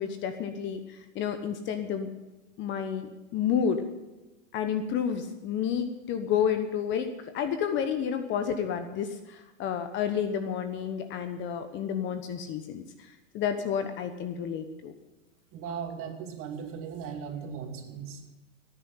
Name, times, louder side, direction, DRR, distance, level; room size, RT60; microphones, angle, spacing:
voice 1, 0.0-2.1 2.6-3.1 3.3-3.8 4.5-14.9, left 8 dB, 30° left, 8 dB, 1.1 m, -30 dB
voice 2, 15.5-18.3, right 7 dB, 35° right, 3 dB, 2.7 m, -38 dB
17.5 x 9.9 x 5.6 m, 1.1 s
hypercardioid pair, 120°, 39 cm